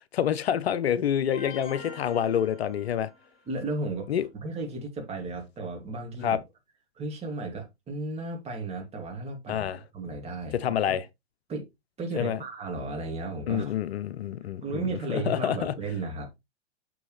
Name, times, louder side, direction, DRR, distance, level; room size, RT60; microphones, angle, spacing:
voice 1, 0.1-3.1 4.1-4.3 6.2-6.4 9.5-9.8 10.5-11.0 12.2-12.4 13.5-15.7, left 9 dB, 65° left, 0.7 m, -27 dB
sound 1, 1.3-3.4, left 4 dB, 35° left, 3.8 m, -44 dB
voice 2, 3.5-6.4 7.0-11.0 11.5-11.7 12.0-13.7 14.6-16.3, right 3 dB, 20° right, 2.5 m, -34 dB
6.3 x 6.1 x 3.2 m
hypercardioid pair, 115°, 34 cm